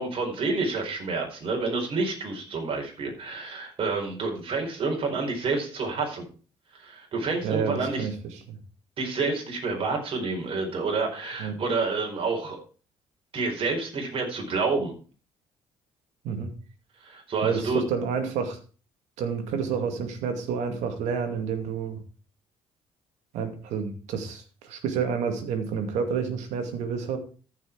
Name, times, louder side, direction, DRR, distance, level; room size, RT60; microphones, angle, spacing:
voice 1, 0.0-6.3 6.7-8.1 9.0-12.6 13.3-14.9 17.0-17.8, right 3 dB, 50° right, 1 dB, 4.6 m, -29 dB
voice 2, 7.4-8.1 8.5-8.6 11.4-11.6 16.2-16.5 17.4-18.6 19.2-22.0 23.3-27.2, right 6 dB, 80° right, 7 dB, 2.4 m, -29 dB
14.0 x 6.4 x 4.7 m, 0.37 s
supercardioid pair, 75°, 12 cm